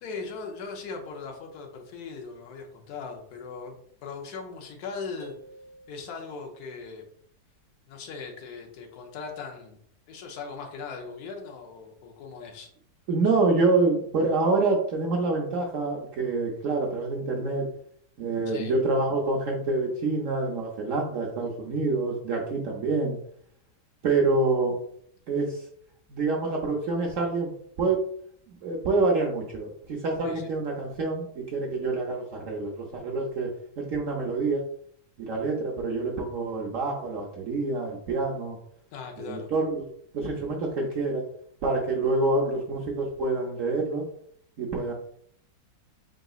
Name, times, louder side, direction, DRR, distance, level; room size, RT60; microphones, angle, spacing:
voice 1, 0.0-5.3 5.9-7.0 7.9-9.8 10.1-12.7 18.5-18.7 30.2-30.5 38.9-39.5, left 4 dB, 65° left, 2 dB, 1.2 m, -39 dB
sound 1, 5.2-6.7, right 2 dB, 40° right, 1.7 m, -51 dB
voice 2, 13.1-17.7 18.2-23.2 24.0-24.8 25.3-25.7 26.1-27.5 27.8-28.0 28.5-34.6 35.2-38.6 39.2-39.8 40.1-41.2 41.6-44.1 44.6-44.9, right 3 dB, 65° right, 0 dB, 0.8 m, -27 dB
3.8 x 3.8 x 2.3 m, 0.64 s
omnidirectional pair, 1.9 m